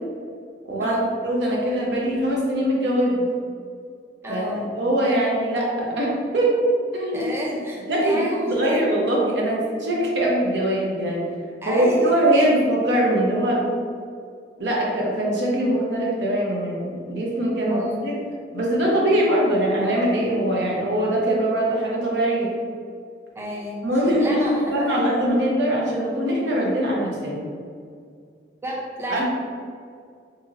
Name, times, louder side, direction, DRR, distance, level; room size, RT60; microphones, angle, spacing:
voice 1, 0.7-3.3 4.3-4.4 4.7-6.6 6.9-7.4 7.9-11.2 11.7-13.6 14.6-18.1 18.5-22.5 23.8-27.4 29.1-29.2, right 1 dB, 75° right, -3 dB, 0.8 m, -22 dB
voice 2, 4.2-4.7 7.1-8.8 11.6-12.5 17.7-17.9 23.4-25.1 28.6-29.2, equal, 15° right, -3 dB, 0.4 m, -31 dB
2.8 x 2.7 x 3.8 m, 2.2 s
head